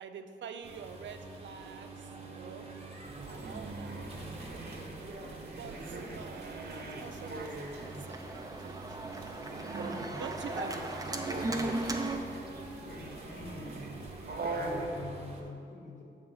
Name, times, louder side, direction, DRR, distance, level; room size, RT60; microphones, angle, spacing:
voice 1, 0.0-2.7 3.3-4.0 5.6-7.7 8.0-9.0 10.2-11.3 15.1-15.2, right 6 dB, 85° right, 7 dB, 0.4 m, -46 dB
sound 1, 0.6-15.4, right 2 dB, 35° right, 1.0 m, -46 dB
sound 2, 3.0-14.9, right 2 dB, 60° right, 0.7 m, -42 dB
Organ, 6.4-12.2, right 2 dB, 20° right, 0.5 m, -37 dB
voice 2, 12.7-13.8 14.5-16.0, left 2 dB, 45° left, -2 dB, 1.4 m, -45 dB
6.8 x 3.5 x 5.4 m, 2.6 s
cardioid pair, 60°, 18 cm